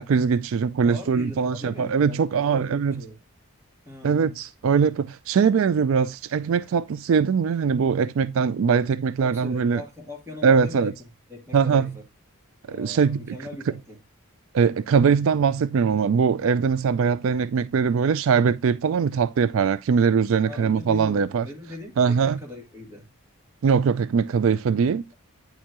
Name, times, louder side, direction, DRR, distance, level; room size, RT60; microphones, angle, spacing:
voice 1, 0.0-3.0 4.0-9.8 10.4-10.9 11.5-11.9 12.7-13.4 14.5-21.5 22.0-22.4 23.6-25.0, right 6 dB, 60° right, 0.3 m, -21 dB
voice 2, 0.8-3.2 3.8-4.4 9.2-11.0 11.3-12.0 12.7-14.0 20.4-23.1, left 2 dB, 10° right, 2.8 m, -40 dB
9.3 x 6.6 x 2.9 m
head